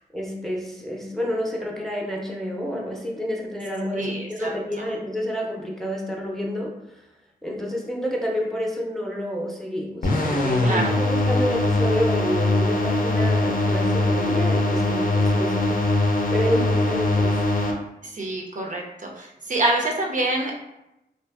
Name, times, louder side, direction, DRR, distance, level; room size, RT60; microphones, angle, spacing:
voice 1, 0.1-7.0 7.4-15.9 16.3-17.4, equal, ahead, -1 dB, 0.6 m, -29 dB
voice 2, 3.9-4.8 10.6-11.0 18.0-20.5, right 2 dB, 45° right, -1 dB, 0.5 m, -26 dB
sound 1, 10.0-17.7, left 2 dB, 55° left, 0.5 m, -22 dB
2.5 x 2.4 x 2.4 m, 0.89 s
cardioid pair, 55°, 18 cm